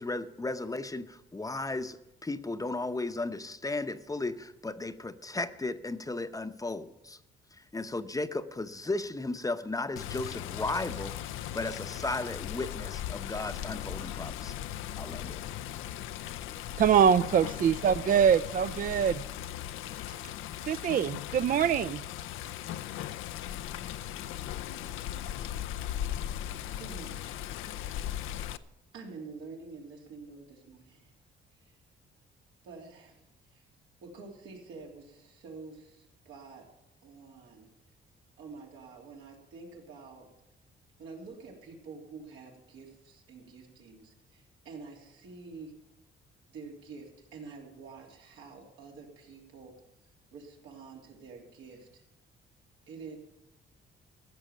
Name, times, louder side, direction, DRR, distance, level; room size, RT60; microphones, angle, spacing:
voice 1, 0.0-7.2 7.7-14.6 14.9-15.4, left 2 dB, 15° left, 10 dB, 0.7 m, -35 dB
Water, 10.0-28.6, left 11 dB, 90° left, 0.5 m, -38 dB
voice 2, 16.8-19.2 20.7-22.0, right 8 dB, 45° right, 14 dB, 0.4 m, -24 dB
voice 3, 26.7-27.5 28.0-28.4 28.9-31.1 31.5-31.8 32.6-33.2 33.5-33.6 34.0-36.7 37.0-37.7 38.4-40.3 41.0-45.7 46.5-49.7 50.3-52.0 52.9-53.2, right 4 dB, 90° right, -1 dB, 3.2 m, -48 dB
15.0 x 6.2 x 9.1 m, 0.88 s
cardioid pair, 90°, 20 cm